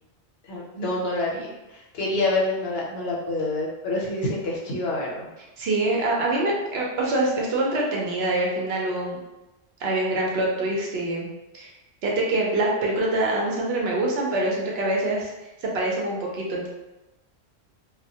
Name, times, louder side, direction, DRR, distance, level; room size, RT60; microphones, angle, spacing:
voice 1, 0.5-5.3, left 2 dB, 70° left, -3 dB, 0.8 m, -27 dB
voice 2, 5.6-9.2 9.8-11.3 11.5-11.7 12.0-15.3 15.6-16.7, right 2 dB, 70° right, -2 dB, 0.8 m, -25 dB
2.1 x 2.1 x 2.7 m, 1.0 s
omnidirectional pair, 1.1 m